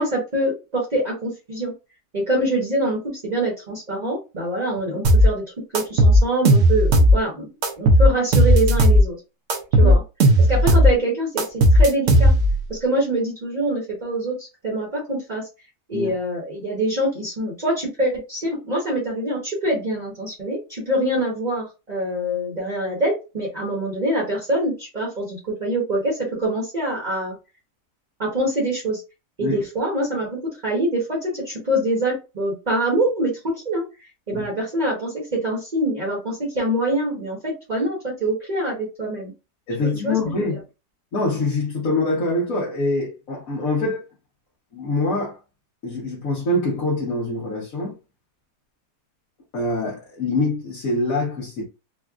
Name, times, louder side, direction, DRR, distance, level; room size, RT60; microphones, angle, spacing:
voice 1, 0.0-1.7 2.1-5.4 5.7-7.5 7.8-9.2 9.8-10.0 10.5-12.3 12.7-15.5 15.9-27.4 28.2-29.0 29.4-39.3 39.8-40.4, right 1 dB, 30° right, 1.0 m, -25 dB
sound 1, 5.0-5.3 5.7-7.2 7.6-9.0 9.5-10.9 11.4-12.6, equal, 55° right, 0.9 m, -14 dB
voice 2, 39.7-40.6 41.1-44.0 44.7-45.4 45.8-48.0 49.5-51.6, left 2 dB, 55° left, 1.3 m, -24 dB
4.2 x 2.4 x 2.4 m
omnidirectional pair, 1.8 m